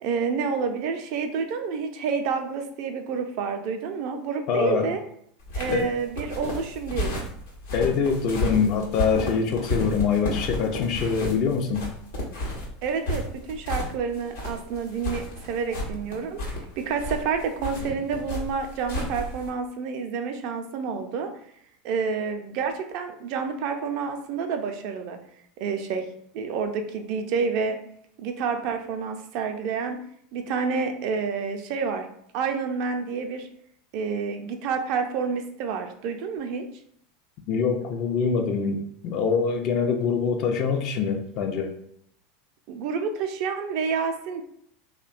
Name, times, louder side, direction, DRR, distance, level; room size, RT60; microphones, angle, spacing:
voice 1, 0.0-5.0 5.5-7.3 12.8-21.3 21.8-25.2 25.6-26.1 26.3-27.8 28.2-30.0 30.3-32.1 32.3-33.5 33.9-36.7 42.7-44.4, right 5 dB, 60° right, 5 dB, 0.4 m, -29 dB
voice 2, 4.5-4.9 5.7-5.9 7.7-11.8 37.5-41.7, left 6 dB, 50° left, 5 dB, 0.4 m, -24 dB
sound 1, 5.4-19.5, left 1 dB, 75° left, 0.8 m, -32 dB
2.7 x 2.1 x 2.4 m, 0.67 s
hypercardioid pair, 85°, 0 cm